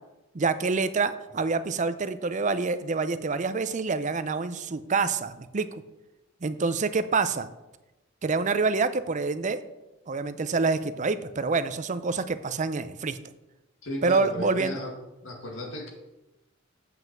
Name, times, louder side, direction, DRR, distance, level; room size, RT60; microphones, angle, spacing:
voice 1, 0.3-5.8 6.4-7.5 8.2-9.6 10.1-13.2 14.0-14.8, right 4 dB, 40° right, 13 dB, 0.5 m, -27 dB
voice 2, 13.8-15.0 15.2-15.9, left 1 dB, 90° left, 2 dB, 2.0 m, -35 dB
7.6 x 5.6 x 7.4 m, 1.0 s
head